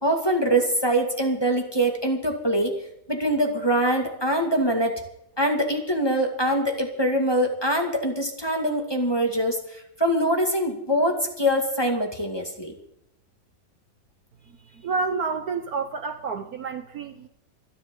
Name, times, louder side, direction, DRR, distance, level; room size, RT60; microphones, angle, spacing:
voice 1, 0.0-2.7 3.1-5.0 5.4-12.7, right 1 dB, 15° left, 2 dB, 1.9 m, -24 dB
voice 2, 14.7-17.3, right 4 dB, 60° right, 8 dB, 1.2 m, -29 dB
26.0 x 10.5 x 3.8 m, 0.77 s
omnidirectional pair, 2.1 m